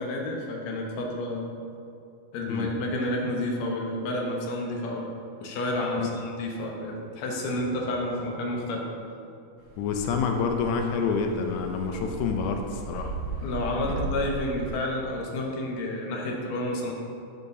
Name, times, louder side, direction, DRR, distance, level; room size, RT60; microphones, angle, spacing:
voice 1, 0.0-1.5 2.3-5.1 5.4-8.9 13.4-16.9, left 1 dB, 65° left, -1 dB, 1.9 m, -30 dB
sound 1, 9.7-14.7, right 3 dB, 80° right, 1.3 m, -36 dB
voice 2, 9.8-13.1 14.0-14.2, left 5 dB, 90° left, 3 dB, 1.6 m, -28 dB
10.5 x 6.8 x 2.7 m, 2.5 s
omnidirectional pair, 4.0 m